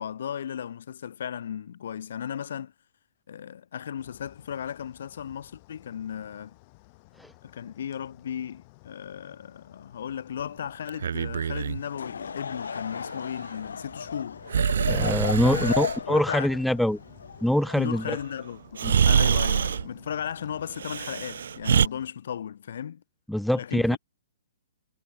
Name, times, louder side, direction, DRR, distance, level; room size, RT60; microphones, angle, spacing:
voice 1, 0.0-2.7 3.3-6.5 7.4-14.4 15.4-16.6 17.7-23.0 23.5-24.0, left 9 dB, 65° left, 6.5 m, -36 dB
sound 1, 4.0-22.1, left 26 dB, 40° left, 4.4 m, -55 dB
Breathing, 10.9-11.8 14.5-16.0 18.1-18.2 18.8-19.9 20.8-21.9, right 7 dB, 70° right, 0.6 m, -24 dB
Laughter / Crowd, 11.8-18.2, left 6 dB, 80° left, 0.9 m, -35 dB
voice 2, 14.9-17.0 17.4-18.2 18.8-19.0 23.3-24.0, left 1 dB, ahead, 0.5 m, -24 dB
hypercardioid pair, 140°, 0 cm